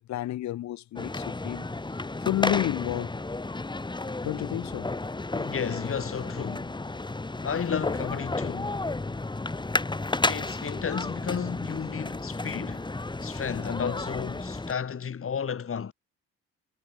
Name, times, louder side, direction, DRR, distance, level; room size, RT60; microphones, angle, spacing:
voice 1, 0.0-1.7 2.2-3.1 4.2-5.0, left 14 dB, 65° left, 0.8 m, -30 dB
sound 1, 1.0-14.7, left 2 dB, 15° left, 2.2 m, -32 dB
voice 2, 5.3-6.8 7.4-8.8 10.3-12.9 13.2-15.9, left 7 dB, 45° left, 4.0 m, -33 dB
cardioid pair, 90°, 30 cm